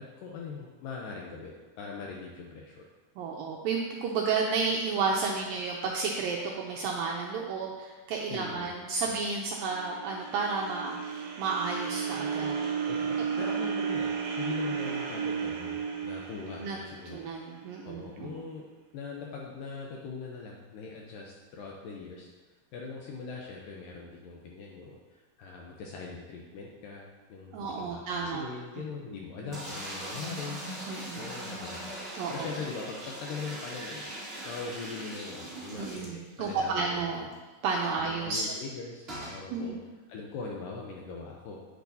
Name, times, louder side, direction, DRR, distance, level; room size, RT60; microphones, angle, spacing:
voice 1, 0.0-2.8 8.3-8.7 9.1-9.2 12.9-17.2 17.8-18.6 18.9-22.3 22.7-30.6 31.1-31.9 32.3-37.2 37.9-39.8 40.1-41.6, left 4 dB, 80° left, -1 dB, 2.0 m, -41 dB
voice 2, 3.2-12.6 13.2-13.7 16.5-16.8 17.1-18.4 27.5-28.5 28.8-28.9 30.9-31.3 32.1-32.5 35.7-37.3 37.6-38.5 39.5-39.8, right 4 dB, 90° right, 0 dB, 2.0 m, -32 dB
sound 1, 9.5-17.8, right 6 dB, 70° right, 1.8 m, -33 dB
sound 2, 29.5-36.7 37.0-37.1 37.3-37.4 39.1-39.4, right 1 dB, 40° right, 0.8 m, -40 dB
9.2 x 9.0 x 2.7 m, 1.3 s
omnidirectional pair, 4.7 m